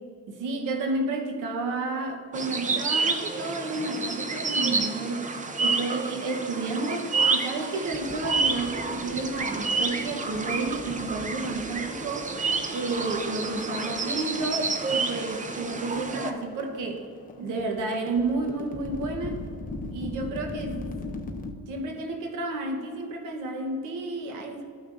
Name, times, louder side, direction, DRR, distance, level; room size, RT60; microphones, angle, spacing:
voice 1, 0.3-5.3 5.6-12.4 12.7-17.0 17.4-19.4 19.9-21.1 21.7-24.6, right 3 dB, 85° right, 3 dB, 1.1 m, -31 dB
sound 1, 2.3-16.3, right 4 dB, 25° right, 0.6 m, -29 dB
sound 2, 7.8-21.5, left 2 dB, 30° left, 0.8 m, -40 dB
13.0 x 5.9 x 2.5 m, 2.1 s
cardioid pair, 90°, 30 cm